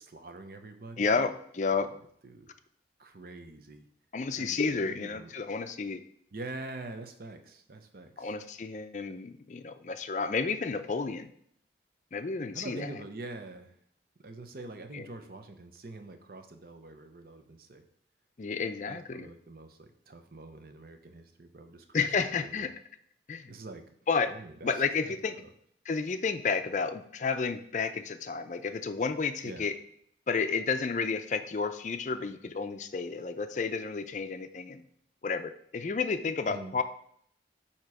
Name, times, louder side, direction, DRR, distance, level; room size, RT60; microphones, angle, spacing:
voice 1, 0.0-1.3 1.7-1.9 2.2-2.5 3.0-3.9 4.4-5.3 6.3-8.3 12.5-13.8 14.2-17.8 18.9-22.1 22.4-22.7 23.5-23.8 24.3-25.5 29.4-29.7 36.5-36.7, right 2 dB, 55° right, 6 dB, 0.7 m, -45 dB
voice 2, 1.0-1.9 4.1-6.0 8.2-11.3 12.1-13.0 14.9-15.1 18.4-19.3 21.9-22.7 23.3-23.5 24.1-24.3 24.6-25.4 25.9-29.7 30.3-34.8 35.2-36.8, left 5 dB, 45° left, 9 dB, 0.4 m, -31 dB
8.8 x 2.9 x 4.8 m, 0.67 s
head